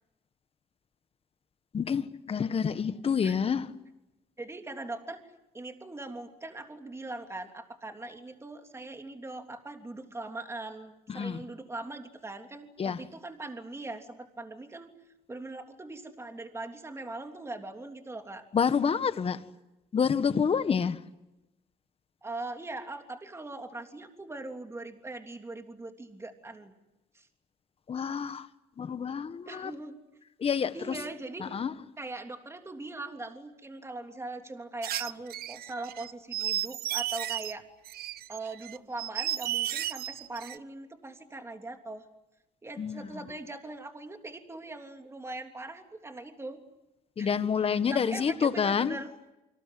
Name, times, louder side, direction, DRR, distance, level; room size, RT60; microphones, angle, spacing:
voice 1, 1.7-3.7 11.1-11.4 12.8-13.0 18.5-19.4 19.9-21.0 27.9-28.5 28.8-29.7 30.4-31.0 31.4-31.7 42.8-43.1 47.2-49.0, left 6 dB, 35° left, 1.6 m, -28 dB
voice 2, 4.4-5.2 5.5-14.9 15.3-18.4 22.2-26.7 27.1-27.3 29.5-30.0 30.7-31.5 32.0-37.6 38.3-42.1 42.6-46.6 47.2-47.3 47.7-49.1, right 2 dB, 15° right, 3.3 m, -41 dB
sound 1, 34.8-37.5 37.8-40.6, right 13 dB, 65° right, 0.9 m, -34 dB
28.0 x 25.5 x 7.8 m
cardioid pair, 110°, 17 cm